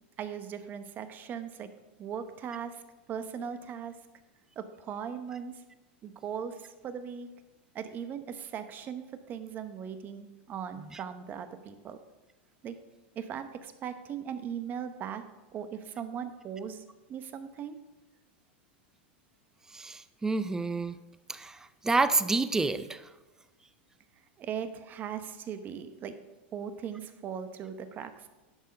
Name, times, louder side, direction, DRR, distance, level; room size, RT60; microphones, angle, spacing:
voice 1, 0.2-1.7 2.0-2.8 3.1-3.9 4.6-5.6 6.0-7.3 7.7-12.0 12.6-12.7 13.1-15.2 15.5-16.8 17.1-17.8 24.4-26.2 26.5-28.3, right 8 dB, 30° right, 10 dB, 0.9 m, -39 dB
voice 2, 19.7-21.0 21.3-21.6 21.8-23.0, right 3 dB, 10° right, 13 dB, 0.5 m, -28 dB
11.0 x 6.6 x 5.2 m, 1.1 s
supercardioid pair, 135°, 6 cm